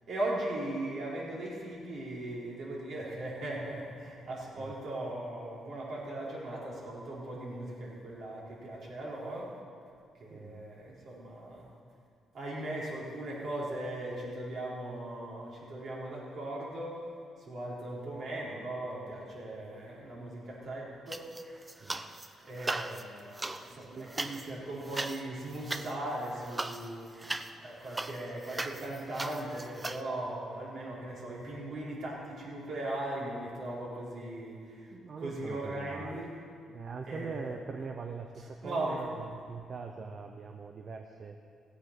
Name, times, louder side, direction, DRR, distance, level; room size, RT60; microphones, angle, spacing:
voice 1, 0.1-9.5 10.2-11.7 12.3-17.0 17.4-21.3 22.4-27.2 27.6-34.9 35.2-36.3 37.1-37.8 38.4-39.0 39.4-39.5, right 1 dB, 60° right, -5 dB, 4.1 m, -38 dB
voice 2, 10.3-10.7 21.8-22.1 23.9-24.1 34.9-36.3 36.7-41.3, right 5 dB, 45° right, 4 dB, 0.8 m, -42 dB
sound 1, 21.1-22.3 22.6-30.0, right 2 dB, 20° right, 0.6 m, -39 dB
16.0 x 8.3 x 6.0 m, 2.2 s
cardioid pair, 90°, 0 cm